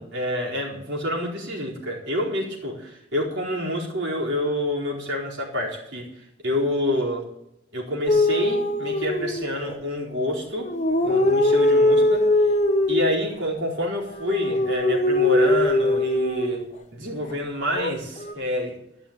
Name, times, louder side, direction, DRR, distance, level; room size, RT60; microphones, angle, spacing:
voice 1, 0.0-7.2 7.7-10.7 11.0-12.5 12.9-16.6 16.9-18.8, left 1 dB, 65° right, -3 dB, 4.6 m, -28 dB
sound 1, 8.1-9.8 10.6-13.2 14.1-16.7 17.7-18.3, left 1 dB, 35° left, 1.1 m, -21 dB
13.5 x 6.3 x 8.9 m, 0.82 s
head